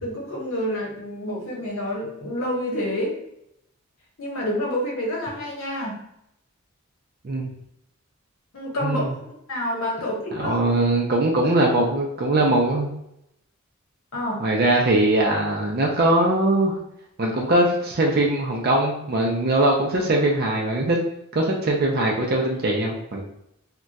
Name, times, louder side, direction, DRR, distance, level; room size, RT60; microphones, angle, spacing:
voice 1, 0.0-3.1 4.2-6.0 8.5-10.7 14.1-14.5, left 1 dB, 65° left, -2 dB, 0.9 m, -28 dB
voice 2, 8.8-9.1 10.3-13.0 14.4-16.8 17.2-21.0 21.3-23.2, right 1 dB, 45° right, 0 dB, 0.4 m, -21 dB
2.3 x 2.2 x 3.9 m, 0.79 s
head